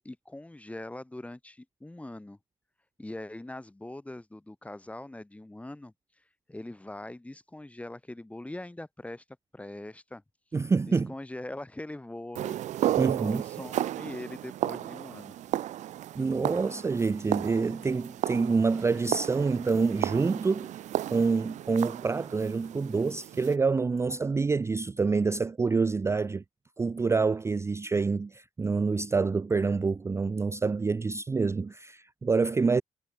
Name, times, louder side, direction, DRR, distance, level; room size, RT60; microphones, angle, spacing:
voice 1, 0.0-2.4 3.0-5.9 6.5-9.2 9.5-10.2 10.9-12.6 13.0-15.4, left 1 dB, 10° left, 0.8 m, -42 dB
voice 2, 10.5-11.1 13.0-13.4 16.2-20.7 21.1-26.4 26.8-32.8, right 4 dB, 20° right, 0.4 m, -27 dB
sound 1, 12.4-23.6, right 12 dB, 60° right, 0.6 m, -34 dB
hypercardioid pair, 50°, 14 cm